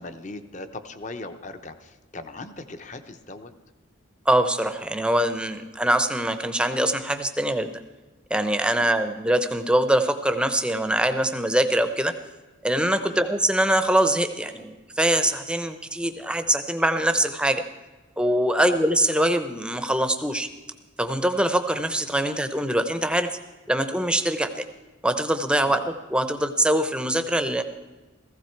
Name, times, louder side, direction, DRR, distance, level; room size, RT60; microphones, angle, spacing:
voice 1, 0.0-3.5 8.8-8.9 13.0-13.3 18.6-18.8 25.6-25.8, left 2 dB, 35° left, 9 dB, 0.8 m, -39 dB
voice 2, 4.3-7.7 8.3-12.1 12.6-17.6 18.2-20.5 21.0-23.3 23.7-24.6 25.0-25.8 26.1-27.6, right 1 dB, 5° right, 9 dB, 0.7 m, -23 dB
16.0 x 15.5 x 4.6 m, 1.2 s
head